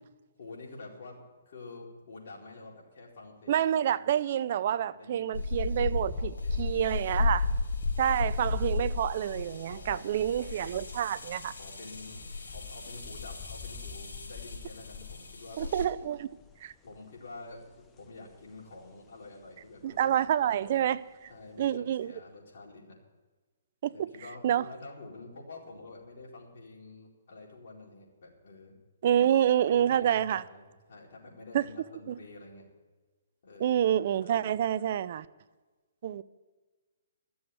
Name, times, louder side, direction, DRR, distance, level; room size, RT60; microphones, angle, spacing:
voice 1, 0.4-3.8 4.9-5.4 6.1-7.6 9.7-10.1 11.5-15.7 16.8-20.1 20.6-20.8 21.3-23.0 23.9-28.8 29.6-32.7 33.4-33.8 34.2-34.6 34.9-35.0, left 3 dB, 60° left, 4.3 m, -48 dB
voice 2, 3.5-7.4 8.0-11.5 15.6-16.3 16.6-16.7 19.8-21.0 21.6-22.1 23.8-24.1 24.4-24.7 29.0-30.4 31.5-31.6 32.1-32.2 33.6-35.3 36.0-36.2, right 10 dB, 50° right, 0.5 m, -28 dB
sound 1, 5.3-15.8, left 3 dB, 80° left, 3.9 m, -34 dB
sound 2, 5.7-21.7, left 7 dB, 15° left, 0.8 m, -48 dB
14.0 x 7.0 x 9.4 m
hypercardioid pair, 150°, 0 cm